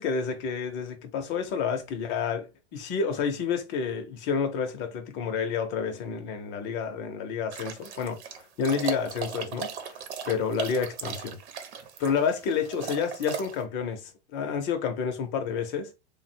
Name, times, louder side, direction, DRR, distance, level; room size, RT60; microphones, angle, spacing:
voice 1, 0.0-11.4 12.0-15.9, left 6 dB, 30° left, 0.8 m, -30 dB
sound 1, 7.5-13.6, right 7 dB, 70° right, 1.0 m, -37 dB
3.4 x 2.2 x 4.4 m
supercardioid pair, 150°, 34 cm